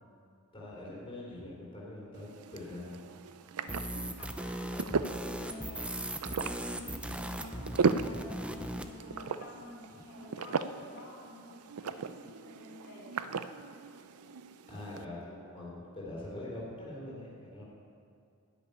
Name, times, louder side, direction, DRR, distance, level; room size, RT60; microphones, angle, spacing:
voice 1, 0.5-3.0 14.7-17.6, left 1 dB, 25° left, -6 dB, 3.6 m, -43 dB
sound 1, 2.1-15.0, right 5 dB, 85° right, 0.5 m, -37 dB
sound 2, 3.7-8.9, right 1 dB, 5° right, 0.6 m, -38 dB
voice 2, 4.2-6.0 6.3-13.2, left 2 dB, 65° left, -5 dB, 3.5 m, -50 dB
13.0 x 6.9 x 9.7 m, 2.5 s
head